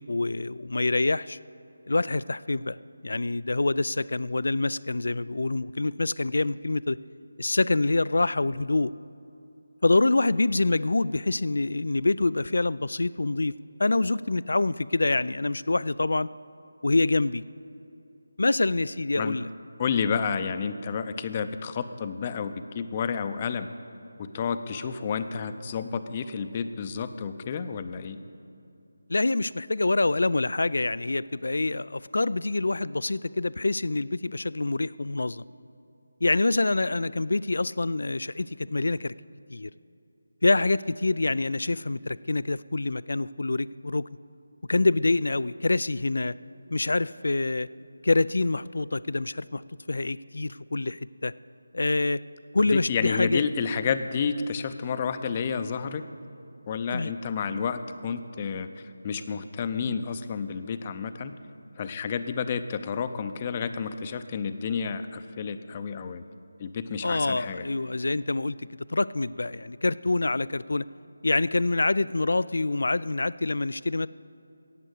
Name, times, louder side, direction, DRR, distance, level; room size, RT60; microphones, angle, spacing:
voice 1, 0.0-1.4 1.9-2.8 3.0-7.0 7.4-8.9 9.8-13.5 13.8-16.3 16.8-17.4 18.4-19.5 29.1-35.4 36.2-39.1 39.5-39.7 40.4-44.1 44.7-46.3 46.7-47.7 48.0-49.6 49.9-51.3 51.7-52.2 52.5-53.4 56.9-57.1 67.0-70.8 71.2-74.1, left 2 dB, 70° left, 18 dB, 0.3 m, -26 dB
voice 2, 19.8-23.7 24.2-28.2 52.7-56.0 56.7-58.7 59.0-61.3 61.8-66.2 66.6-67.6, left 6 dB, 25° left, 10 dB, 0.6 m, -30 dB
14.0 x 9.0 x 8.3 m, 2.7 s
figure-of-eight pair, 170°, 0 cm